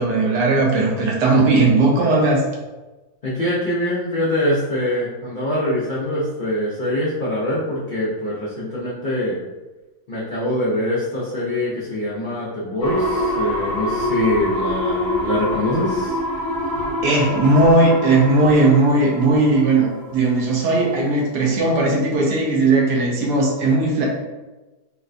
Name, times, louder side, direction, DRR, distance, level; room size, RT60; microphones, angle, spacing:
voice 1, 0.0-2.4 17.0-24.1, right 2 dB, 85° right, -2 dB, 1.2 m, -17 dB
voice 2, 3.2-9.4 10.1-16.2, left 1 dB, 85° left, -7 dB, 0.4 m, -24 dB
sound 1, 12.8-20.5 20.8-20.9, left 1 dB, 60° left, 1.2 m, -25 dB
3.9 x 2.2 x 2.5 m, 1.1 s
omnidirectional pair, 1.7 m